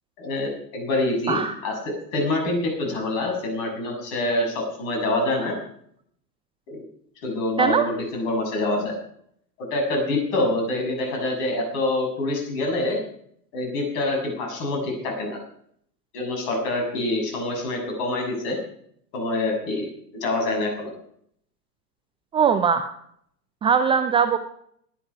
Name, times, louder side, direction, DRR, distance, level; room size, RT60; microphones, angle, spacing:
voice 1, 0.2-1.8 2.1-5.6 6.7-6.8 7.2-8.9 9.6-13.0 13.5-15.4 16.1-18.6 19.1-19.9 20.1-20.9, left 2 dB, 50° left, 2 dB, 6.9 m, -26 dB
voice 2, 22.3-22.9 23.6-24.4, right 6 dB, 10° right, 8 dB, 0.5 m, -20 dB
20.5 x 9.6 x 4.9 m, 0.67 s
figure-of-eight pair, 95°, 50 cm